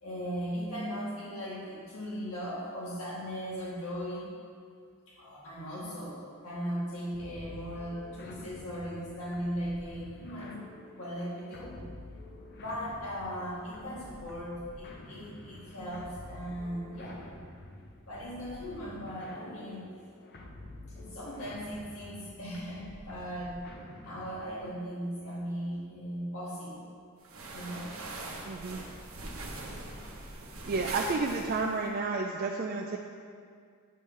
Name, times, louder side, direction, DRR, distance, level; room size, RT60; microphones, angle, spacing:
voice 1, 0.0-4.3 5.1-10.6 11.0-11.8 12.6-17.3 18.1-19.8 20.9-23.6 24.0-26.9 27.5-28.0 29.8-30.0, equal, 90° left, -6 dB, 1.7 m, -38 dB
sound 1, 7.1-24.7, left 1 dB, 50° left, 0.6 m, -49 dB
sound 2, 27.2-31.9, right 2 dB, 75° right, 1.0 m, -42 dB
voice 2, 28.4-28.8 30.7-33.0, right 3 dB, 45° right, 1 dB, 0.3 m, -31 dB
8.8 x 3.2 x 5.3 m, 2.1 s
head